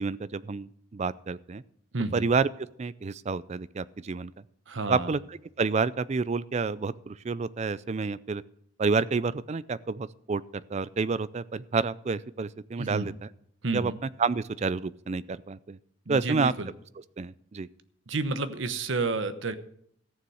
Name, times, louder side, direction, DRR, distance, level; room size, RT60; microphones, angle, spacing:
voice 1, 0.0-1.6 2.1-2.5 2.8-4.3 4.9-5.2 5.6-8.4 8.8-13.3 13.7-13.9 14.2-15.8 16.1-16.5 17.2-17.7, right 4 dB, 35° right, 18 dB, 0.4 m, -29 dB
voice 2, 1.9-2.3 4.7-5.1 12.8-13.1 13.6-14.0 16.1-16.7 18.1-19.6, right 3 dB, 70° right, 11 dB, 1.0 m, -30 dB
14.5 x 7.0 x 6.3 m, 0.69 s
head